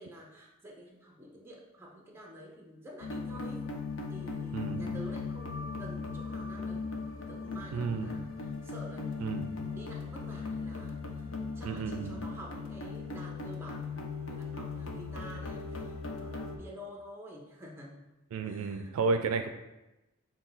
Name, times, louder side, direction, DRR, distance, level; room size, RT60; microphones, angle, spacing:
voice 1, 0.0-3.6 4.1-6.8 7.2-18.0 18.4-19.0, equal, 10° right, -1 dB, 0.7 m, -49 dB
sound 1, 3.0-16.6, left 4 dB, 60° left, 0.6 m, -38 dB
voice 2, 4.5-4.9 7.7-8.1 9.2-9.5 11.6-12.2 18.3-19.5, right 4 dB, 75° right, 7 dB, 0.3 m, -32 dB
5.8 x 2.3 x 3.9 m, 0.98 s
head